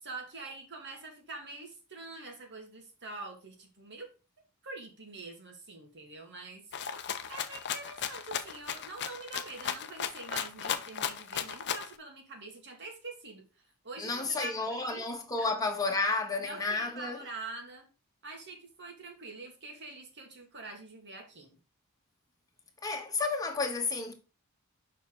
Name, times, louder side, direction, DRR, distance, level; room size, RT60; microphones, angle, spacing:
voice 1, 0.0-4.1 4.6-6.6 7.3-13.4 13.8-15.1 15.4-15.5 16.4-17.9 18.2-21.5, right 3 dB, 55° right, 2.3 m, -45 dB
Rattle (instrument), 6.7-11.9, left 8 dB, 50° left, 0.7 m, -35 dB
voice 2, 14.0-17.2 22.8-24.1, left 3 dB, 15° left, 1.5 m, -31 dB
7.0 x 5.8 x 3.9 m
head